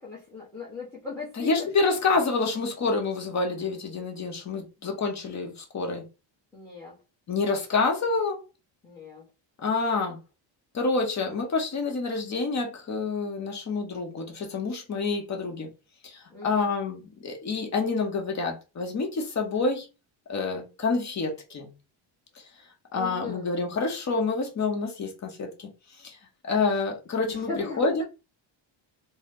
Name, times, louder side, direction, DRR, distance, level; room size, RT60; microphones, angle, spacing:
voice 1, 0.0-1.7 6.5-6.9 8.8-9.2 16.3-16.7 23.0-23.5 27.2-28.0, left 3 dB, 5° left, 1.0 m, -38 dB
voice 2, 1.4-6.0 7.3-8.4 9.6-10.2 10.7-15.7 16.0-19.9 20.3-21.7 22.9-25.7 26.0-26.2 26.4-28.0, left 4 dB, 35° left, 1.0 m, -28 dB
4.0 x 2.2 x 3.7 m
cardioid pair, 165°, 49 cm